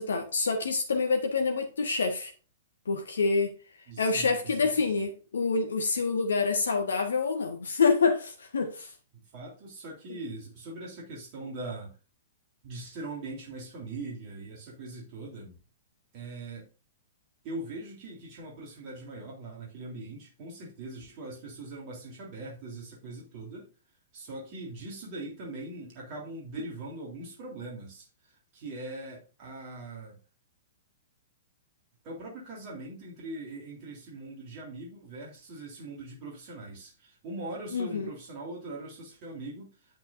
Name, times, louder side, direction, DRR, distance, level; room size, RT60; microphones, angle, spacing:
voice 1, 0.0-2.3 2.9-3.5 4.0-8.9 10.1-10.2 37.7-38.1, left 4 dB, 70° left, 1.3 m, -27 dB
voice 2, 3.9-5.1 9.1-11.9 12.6-15.6 16.1-16.7 17.4-23.7 24.1-30.2 32.0-39.7, right 2 dB, 40° right, 3.4 m, -41 dB
8.7 x 8.6 x 2.6 m
figure-of-eight pair, 110°, 0 cm